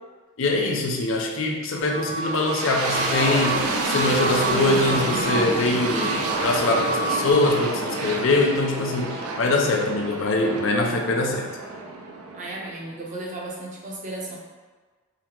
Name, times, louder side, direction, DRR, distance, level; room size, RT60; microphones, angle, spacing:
voice 1, 0.4-11.5, left 2 dB, 60° left, 1 dB, 0.4 m, -23 dB
sound 1, 1.9-7.3, right 2 dB, 55° right, 1.0 m, -31 dB
sound 2, 2.1-13.0, right 2 dB, 85° right, 0.5 m, -28 dB
voice 2, 12.3-14.4, right 2 dB, 35° right, -3 dB, 0.6 m, -34 dB
3.7 x 2.0 x 4.3 m, 1.4 s
head